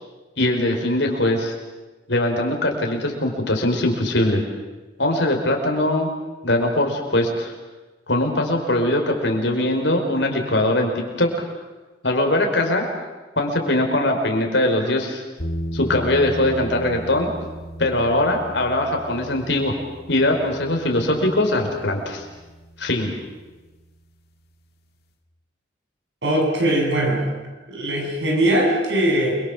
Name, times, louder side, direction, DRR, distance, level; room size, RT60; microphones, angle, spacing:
voice 1, 0.4-1.5 2.1-4.4 5.0-6.1 6.4-7.5 8.1-10.9 11.2-11.4 12.0-12.9 13.4-15.2 15.7-17.3 17.8-19.8 20.1-22.2 22.8-23.1, left 1 dB, 75° left, 2 dB, 5.2 m, -21 dB
sound 1, 15.4-24.3, right 1 dB, 55° left, 2.6 m, -36 dB
voice 2, 26.2-27.3 27.7-29.4, right 1 dB, 70° right, 0 dB, 7.6 m, -20 dB
28.5 x 23.0 x 7.5 m, 1.2 s
head